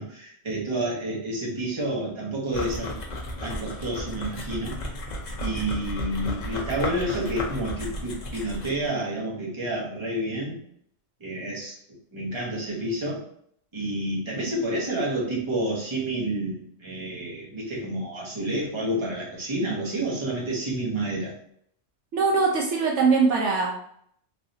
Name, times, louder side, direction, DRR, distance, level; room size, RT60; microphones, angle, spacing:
voice 1, 0.0-3.0 3.4-4.8 5.4-10.6 11.2-11.8 12.1-13.2 13.7-21.3, right 1 dB, 25° right, -4 dB, 1.0 m, -29 dB
sound 1, 2.5-8.9, left 1 dB, 45° left, 0.6 m, -34 dB
voice 2, 22.1-23.7, right 4 dB, 70° right, -1 dB, 0.9 m, -21 dB
3.2 x 2.7 x 2.7 m, 0.65 s
omnidirectional pair, 1.3 m